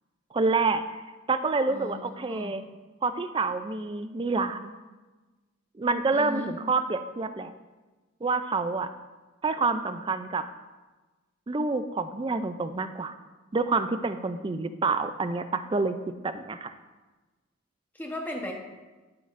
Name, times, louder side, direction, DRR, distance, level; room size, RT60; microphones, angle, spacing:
voice 1, 0.3-0.8 1.3-2.6 3.0-4.7 5.8-7.5 8.2-8.9 9.4-10.4 11.5-13.2 13.5-16.0 16.2-16.7, right 3 dB, 25° right, 10 dB, 0.3 m, -27 dB
voice 2, 2.2-2.6 6.1-6.5 17.9-18.5, left 1 dB, 10° left, 0 dB, 1.0 m, -36 dB
11.5 x 8.1 x 2.5 m, 1.2 s
head